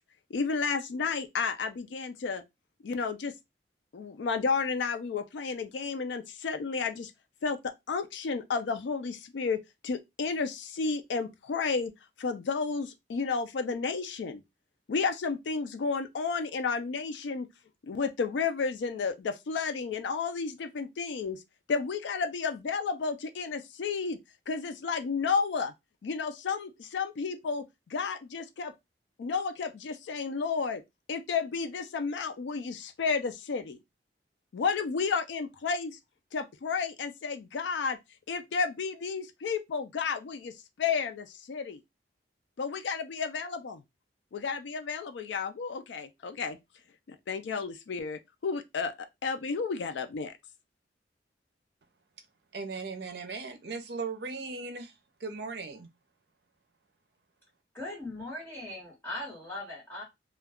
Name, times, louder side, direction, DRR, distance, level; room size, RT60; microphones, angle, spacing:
voice 1, 0.3-2.4 2.8-3.3 3.9-7.1 7.4-11.9 12.2-14.4 14.9-17.5 17.9-21.4 21.7-24.2 24.5-25.7 26.0-28.7 29.2-30.8 31.1-33.8 34.5-36.0 36.3-38.0 38.3-41.8 42.6-43.8 44.3-46.6 47.1-50.3, left 5 dB, 80° left, 0.4 m, -32 dB
voice 2, 52.5-54.9 55.2-55.9, right 4 dB, 65° right, 0.6 m, -37 dB
voice 3, 57.7-60.0, left 1 dB, 15° left, 1.1 m, -39 dB
2.2 x 2.2 x 3.4 m
head